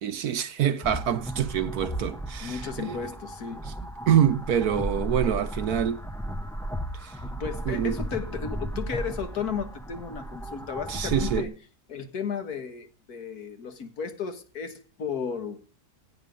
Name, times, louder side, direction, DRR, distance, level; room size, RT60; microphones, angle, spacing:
voice 1, 0.0-3.0 3.6-3.7 4.1-6.0 6.9-7.2 7.7-8.0 10.9-11.5, right 9 dB, 65° right, 1.2 m, -26 dB
sound 1, 0.8-11.4, right 1 dB, 5° left, 0.4 m, -35 dB
voice 2, 2.4-3.6 7.4-11.5 11.9-15.6, left 6 dB, 60° left, 1.9 m, -34 dB
16.5 x 9.5 x 5.3 m
omnidirectional pair, 1.9 m